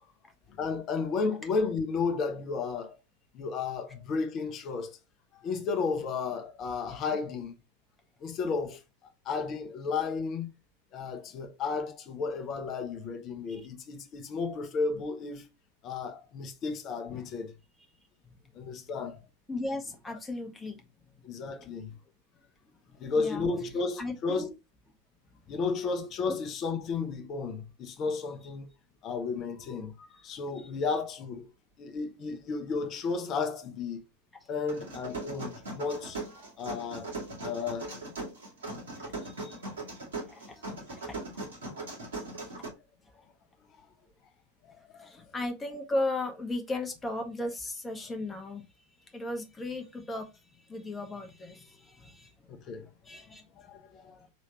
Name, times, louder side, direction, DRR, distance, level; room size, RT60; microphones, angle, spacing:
voice 1, 0.6-3.0 3.3-5.0 5.3-7.5 8.2-8.8 9.2-10.5 10.9-15.5 15.8-17.5 18.5-19.2 21.2-21.9 23.0-24.5 25.5-28.7 29.0-31.5 31.8-34.0 34.5-36.2 36.6-37.1 37.4-38.0 44.9-45.1 52.5-52.9 53.3-54.3, left 4 dB, 35° left, 0.8 m, -33 dB
voice 2, 19.5-20.8 21.6-21.7 22.9-24.5 30.2-30.3 30.6-30.7 34.4-34.5 39.0-39.6 40.3-40.4 42.2-42.3 45.0-48.6 49.1-52.5 53.0-53.4, left 2 dB, 10° left, 1.1 m, -36 dB
sound 1, 34.7-42.7, right 2 dB, 70° right, 2.4 m, -39 dB
5.1 x 3.2 x 2.9 m
figure-of-eight pair, 90°, 0 cm